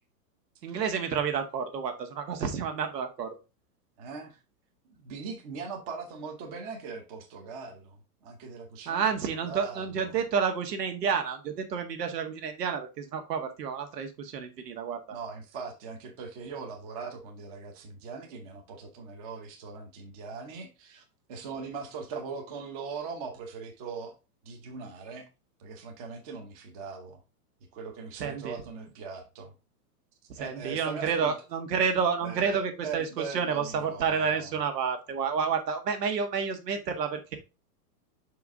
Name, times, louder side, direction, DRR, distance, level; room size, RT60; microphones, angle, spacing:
voice 1, 0.6-3.3 8.9-15.0 28.2-28.6 30.4-37.4, right 6 dB, 85° right, 1.7 m, -30 dB
voice 2, 4.0-4.4 5.0-9.0 9.4-10.2 15.1-21.0 21.3-24.1 24.4-25.3 25.6-27.2 27.7-29.5 30.4-31.3 32.2-34.6, right 5 dB, 25° right, 0.8 m, -40 dB
5.9 x 4.7 x 3.6 m
supercardioid pair, 175°, 47 cm